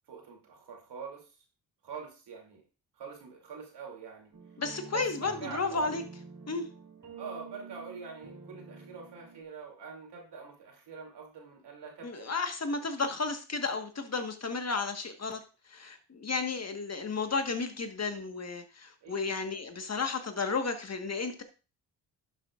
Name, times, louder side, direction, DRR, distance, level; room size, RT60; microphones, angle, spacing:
voice 1, 0.1-1.4 1.8-2.6 2.9-4.3 4.9-6.0 7.2-12.3 19.0-19.2, right 5 dB, 80° right, 1 dB, 2.9 m, -45 dB
sound 1, 4.3-9.4, right 5 dB, 50° right, 2.9 m, -48 dB
voice 2, 4.6-6.0 6.5-6.7 12.0-15.4 15.7-21.4, left 4 dB, 40° left, 7 dB, 1.5 m, -33 dB
11.5 x 7.5 x 2.5 m, 0.33 s
cardioid pair, 60°, 40 cm